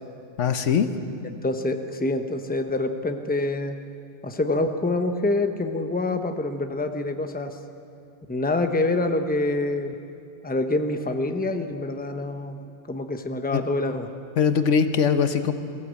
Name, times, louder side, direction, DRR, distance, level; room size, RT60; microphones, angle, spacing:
voice 1, 0.4-0.9 13.5-13.6 14.4-15.5, left 6 dB, 85° left, 9 dB, 1.3 m, -21 dB
voice 2, 1.4-3.8 4.2-7.6 8.3-10.0 10.4-14.1, left 2 dB, 10° left, 6 dB, 0.9 m, -26 dB
22.5 x 15.0 x 8.2 m, 2.5 s
omnidirectional pair, 1.2 m